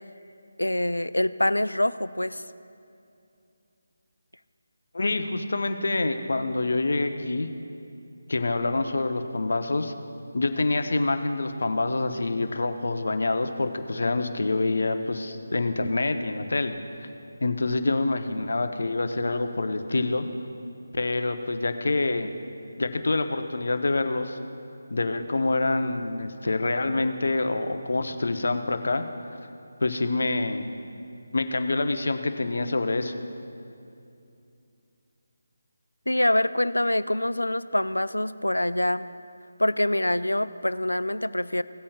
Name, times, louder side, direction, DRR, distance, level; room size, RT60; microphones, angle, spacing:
voice 1, 0.6-2.4 36.1-39.1 39.6-41.6, left 1 dB, 90° left, 15 dB, 0.3 m, -25 dB
voice 2, 4.9-7.5 8.3-9.9 10.3-16.7 17.4-20.3 20.9-22.3 22.8-24.4 24.9-29.3 29.8-30.6 31.3-33.1, left 2 dB, 65° left, 7 dB, 0.8 m, -26 dB
17.0 x 8.5 x 2.4 m, 2.6 s
figure-of-eight pair, 155°, 0 cm